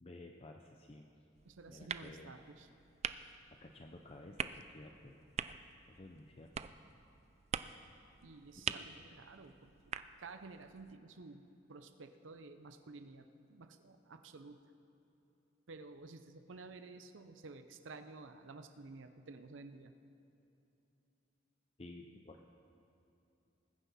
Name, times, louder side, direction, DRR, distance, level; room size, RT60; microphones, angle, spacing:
voice 1, 0.0-1.1 1.7-2.3 3.5-5.2 5.9-6.7 8.7-8.8 21.8-22.4, left 2 dB, 30° left, 3 dB, 0.5 m, -53 dB
sound 1, 1.3-11.0, right 7 dB, 35° right, 0.3 m, -46 dB
voice 2, 1.5-2.7 8.2-14.6 15.7-19.9, right 3 dB, 85° right, 8 dB, 0.6 m, -53 dB
20.5 x 9.6 x 4.2 m, 2.9 s
head